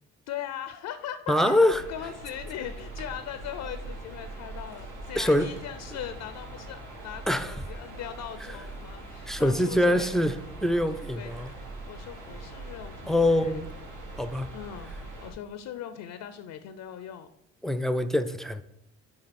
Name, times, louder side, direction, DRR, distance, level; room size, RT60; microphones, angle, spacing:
voice 1, 0.3-1.6 1.9-10.2 11.2-11.4 11.9-13.6 14.5-14.9 15.2-17.3, left 10 dB, 80° left, 10 dB, 0.6 m, -39 dB
voice 2, 1.3-1.8 5.2-5.5 7.3-7.6 9.3-10.4 10.6-11.5 13.1-13.7 14.2-14.5 17.6-18.6, left 1 dB, ahead, 10 dB, 0.5 m, -24 dB
sound 1, 1.7-15.3, right 2 dB, 80° right, 2.0 m, -42 dB
sound 2, 2.8-13.1, right 1 dB, 60° right, 2.8 m, -58 dB
9.7 x 3.9 x 4.2 m, 0.80 s
cardioid pair, 90°, 30 cm